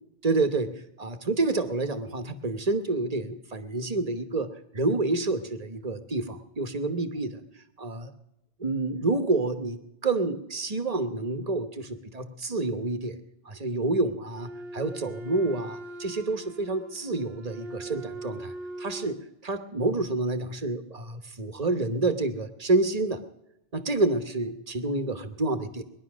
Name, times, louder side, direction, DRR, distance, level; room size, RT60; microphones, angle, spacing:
voice 1, 0.2-7.4 7.8-8.1 8.6-13.2 13.4-18.5 18.8-19.2 19.4-23.2 23.7-25.8, right 2 dB, 40° right, 9 dB, 1.2 m, -28 dB
Wind instrument woodwind instrument, 14.3-19.2, right 2 dB, 75° right, 1.5 m, -40 dB
21.0 x 11.0 x 6.2 m, 0.84 s
omnidirectional pair, 1.0 m